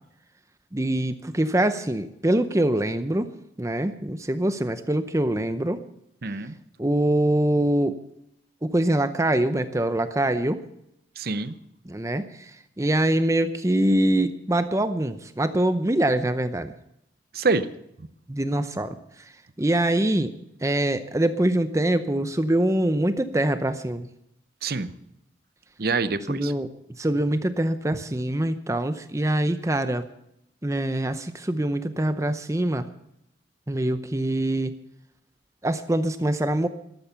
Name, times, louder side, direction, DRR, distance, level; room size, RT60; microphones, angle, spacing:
voice 1, 0.7-3.3 3.6-5.8 6.8-8.0 8.6-10.6 11.9-12.5 12.8-16.7 18.3-19.0 19.6-20.3 20.6-24.1 26.3-26.7 27.0-30.0 30.6-32.9 33.7-34.7 35.6-36.7, right 1 dB, 15° right, 11 dB, 0.6 m, -24 dB
voice 2, 6.2-6.5 11.2-11.6 17.3-17.7 24.6-24.9 25.8-26.5, right 3 dB, 55° right, 13 dB, 0.8 m, -26 dB
13.0 x 13.0 x 6.8 m, 0.77 s
head